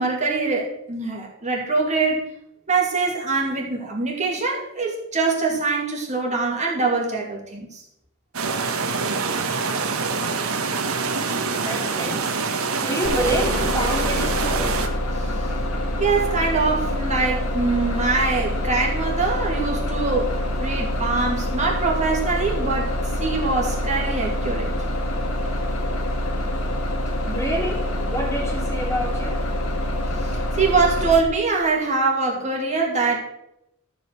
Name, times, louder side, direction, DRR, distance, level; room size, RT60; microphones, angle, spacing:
voice 1, 0.0-2.2 2.7-7.8 15.1-15.3 16.0-22.9 23.2-24.7 30.2-33.2, right 4 dB, 35° right, 2.6 m, -23 dB
sound 1, 8.3-14.9, right 4 dB, 85° right, 1.4 m, -25 dB
voice 2, 11.3-14.8 27.2-29.5, equal, 15° left, 2.7 m, -28 dB
Bus, 13.0-31.2, left 1 dB, 85° left, 1.8 m, -26 dB
13.5 x 5.3 x 7.9 m
head